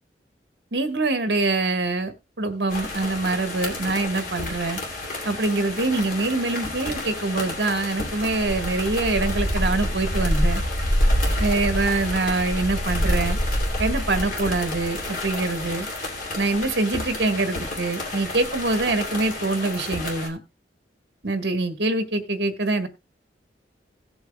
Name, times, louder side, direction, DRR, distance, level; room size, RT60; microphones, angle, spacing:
voice 1, 0.7-4.8 5.2-10.6 11.4-13.4 13.8-15.9 16.3-20.4 21.2-22.9, right 2 dB, 65° right, 8 dB, 1.4 m, -24 dB
sound 1, 2.7-20.3, left 1 dB, 50° left, 2.8 m, -28 dB
17.5 x 7.9 x 2.3 m, 0.24 s
head